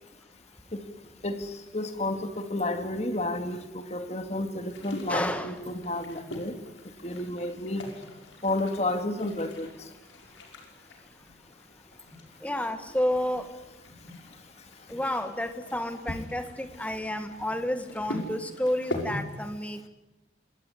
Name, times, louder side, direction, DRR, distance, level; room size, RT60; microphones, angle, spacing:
voice 1, 1.2-6.6 7.0-7.8 8.4-9.7, left 1 dB, 35° left, 7 dB, 2.3 m, -31 dB
sound 1, 4.7-19.2, left 1 dB, 75° left, 5.6 m, -43 dB
voice 2, 5.1-5.5 12.4-13.4 14.9-19.9, left 1 dB, 5° left, 9 dB, 1.7 m, -30 dB
26.0 x 18.5 x 9.9 m, 1.0 s
head